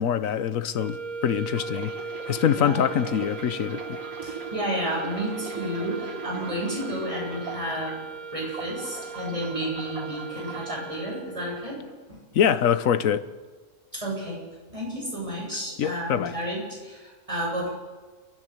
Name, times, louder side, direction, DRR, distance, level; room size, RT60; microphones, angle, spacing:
voice 1, 0.0-1.9 2.3-4.0 12.3-13.2 15.5-16.3, left 9 dB, 60° left, 1.2 m, -24 dB
sound 1, 0.7-11.6, right 4 dB, 40° right, 0.7 m, -38 dB
sound 2, 1.4-7.9 8.3-10.8 11.5-11.7, right 5 dB, 60° right, 1.9 m, -40 dB
voice 2, 4.2-8.1 8.3-11.8 12.1-12.2 13.9-14.4 14.7-17.7, equal, 20° right, 8.0 m, -31 dB
30.0 x 11.0 x 8.3 m
omnidirectional pair, 1.7 m